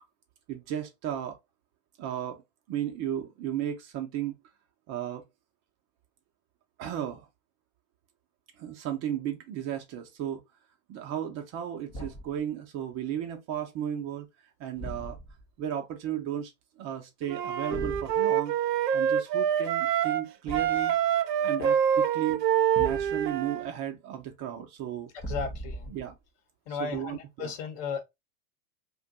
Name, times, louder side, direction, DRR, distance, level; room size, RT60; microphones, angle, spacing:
voice 1, 0.5-1.4 2.0-2.4 2.7-4.4 4.9-5.2 6.8-7.3 8.6-10.4 10.9-14.3 14.6-15.2 15.6-16.5 16.8-18.5 18.9-20.9 21.4-22.4 22.8-25.1 25.9-26.1 26.7-27.5, right 10 dB, 35° right, 0.6 m, -34 dB
Thump thud, 11.9-12.4 14.7-15.5 17.7-18.2 20.4-20.9 22.7-23.4 25.2-26.1, right 1 dB, 10° left, 0.4 m, -39 dB
Wind instrument woodwind instrument, 17.3-20.2 20.5-23.7, right 9 dB, 80° right, 0.6 m, -26 dB
voice 2, 25.3-25.9 26.7-28.0, left 5 dB, 45° left, 1.0 m, -35 dB
2.5 x 2.3 x 3.6 m
hypercardioid pair, 100°, 49 cm